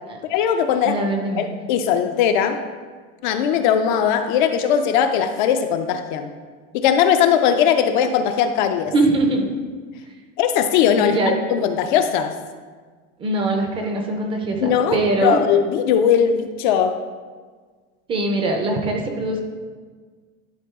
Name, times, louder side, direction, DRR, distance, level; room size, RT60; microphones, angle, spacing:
voice 1, 0.3-1.0 1.4-2.6 3.2-6.3 6.7-8.9 10.4-12.3 14.6-17.0, left 8 dB, 45° left, 8 dB, 0.4 m, -19 dB
voice 2, 0.8-1.4 8.9-9.5 11.0-11.4 13.2-15.4 18.1-19.4, right 2 dB, 15° right, 3 dB, 0.5 m, -22 dB
11.0 x 3.8 x 3.6 m, 1.5 s
supercardioid pair, 170°, 33 cm